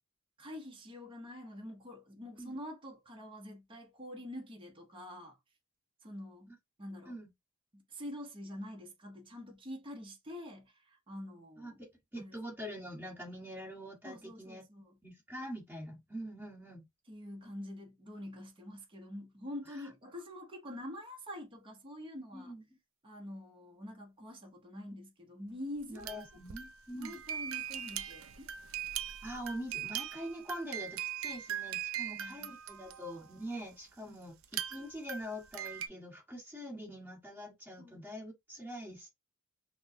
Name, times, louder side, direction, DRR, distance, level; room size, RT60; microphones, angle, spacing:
voice 1, 0.4-5.4 6.0-6.5 6.8-7.2 7.7-11.8 12.2-12.3 14.0-15.0 17.1-22.5 23.0-26.2 26.9-28.5 32.0-32.9 34.0-34.2 37.8-38.0, left 1 dB, 25° right, 0.8 m, -46 dB
voice 2, 11.6-14.6 15.0-16.9 22.3-22.6 25.9-27.1 29.2-39.1, equal, 10° right, 1.7 m, -44 dB
sound 1, 25.8-33.4 34.4-35.9, right 10 dB, 70° right, 0.5 m, -40 dB
5.8 x 2.2 x 2.7 m
head